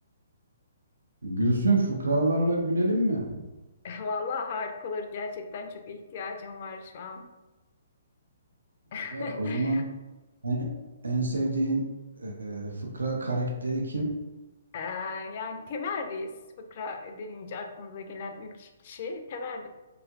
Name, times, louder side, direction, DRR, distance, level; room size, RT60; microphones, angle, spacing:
voice 1, 1.2-3.4 9.1-9.8 10.4-10.7 11.0-11.9 12.2-14.1, right 2 dB, 80° right, 0 dB, 0.5 m, -27 dB
voice 2, 3.8-7.3 8.9-9.8 14.7-19.7, left 4 dB, 45° left, 5 dB, 0.3 m, -36 dB
2.9 x 2.4 x 2.3 m, 1.1 s
figure-of-eight pair, 130°, 0 cm